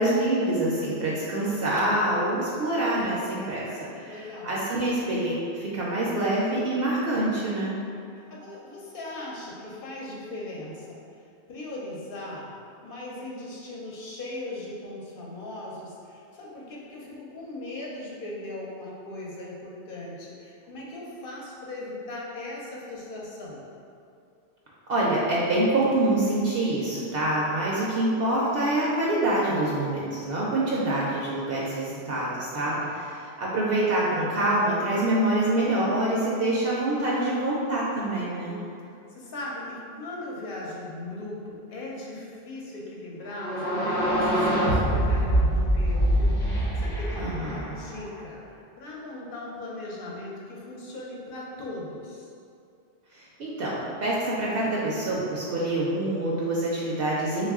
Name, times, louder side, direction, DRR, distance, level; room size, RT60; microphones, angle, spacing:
voice 1, 0.0-3.6 4.0-7.8 24.9-38.6 47.2-47.7 53.2-57.5, right 1 dB, 65° right, -6 dB, 0.7 m, -26 dB
voice 2, 4.1-4.6 8.2-11.0 11.5-12.5 12.8-23.7 32.7-32.9 38.4-52.3, left 2 dB, 60° left, -4 dB, 0.8 m, -39 dB
sound 1, 43.3-48.1, right 1 dB, 25° left, 0.7 m, -24 dB
3.3 x 2.3 x 3.5 m, 2.5 s
omnidirectional pair, 1.2 m